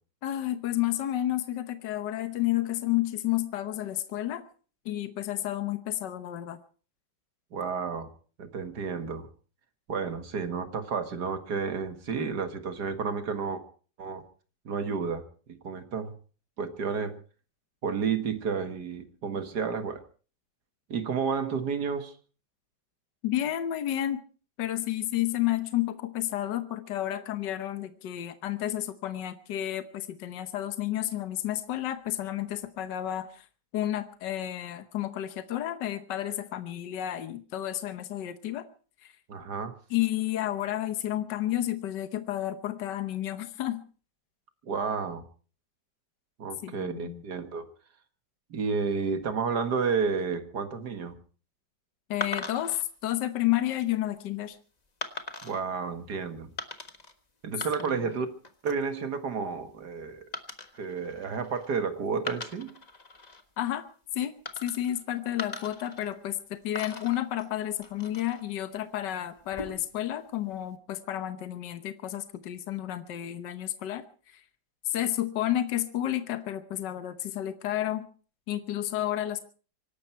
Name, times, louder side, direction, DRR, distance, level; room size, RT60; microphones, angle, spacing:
voice 1, 0.2-4.4 4.8-6.6 23.2-24.2 24.6-33.5 33.7-38.7 39.0-39.1 39.9-43.8 46.6-47.2 52.1-54.6 63.6-63.8 64.1-64.3 64.6-74.4 74.8-78.0 78.5-79.4, left 13 dB, 70° left, 10 dB, 1.7 m, -31 dB
voice 2, 7.5-8.1 8.4-9.3 9.9-13.6 14.0-14.2 14.7-16.1 16.6-17.2 17.8-20.0 20.9-22.2 39.3-39.7 44.6-45.2 46.4-47.7 48.5-51.2 55.4-56.5 57.4-58.3 58.6-60.2 60.7-62.7, right 5 dB, 60° right, 8 dB, 2.2 m, -31 dB
sound 1, 52.2-52.8 53.5-53.9 55.0-55.6 56.6-57.1 57.4-58.2 58.4-58.9 60.3-61.8 62.2-63.4 64.4-65.0 65.4-66.4 66.7-68.4 69.4-70.0, left 3 dB, 25° left, 1.4 m, -40 dB
25.0 x 12.0 x 4.5 m, 0.40 s
omnidirectional pair, 2.0 m